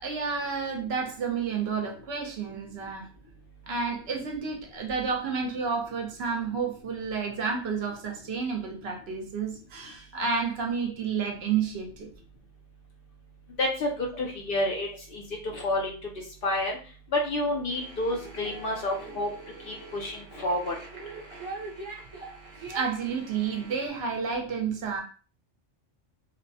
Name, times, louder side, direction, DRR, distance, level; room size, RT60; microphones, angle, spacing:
voice 1, 0.0-3.1 3.7-12.1 22.7-25.0, right 5 dB, 65° right, 1 dB, 0.8 m, -30 dB
voice 2, 13.6-15.9 16.4-16.8 17.1-19.3 19.7-20.7, left 1 dB, 60° left, 0 dB, 0.6 m, -29 dB
sound 1, 17.7-23.9, right 3 dB, 30° right, 0.7 m, -43 dB
2.8 x 2.1 x 2.6 m, 0.38 s
omnidirectional pair, 1.2 m